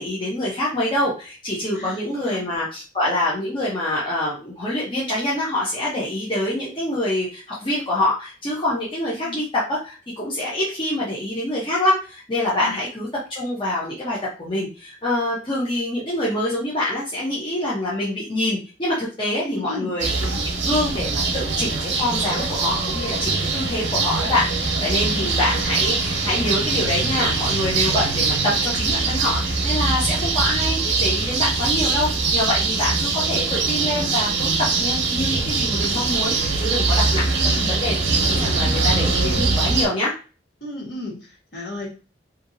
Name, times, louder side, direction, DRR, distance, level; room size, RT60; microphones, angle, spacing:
voice 1, 0.0-20.4 20.6-37.9 38.2-40.1, left 1 dB, 25° left, -6 dB, 0.7 m, -25 dB
voice 2, 1.7-2.4 9.0-9.4 12.6-12.7 19.4-20.0 25.1-25.3 37.1-37.8 40.6-41.9, left 2 dB, 55° left, -5 dB, 1.4 m, -34 dB
sound 1, 20.0-39.9, right 3 dB, 85° right, 0.8 m, -22 dB
2.7 x 2.7 x 2.6 m, 0.35 s
head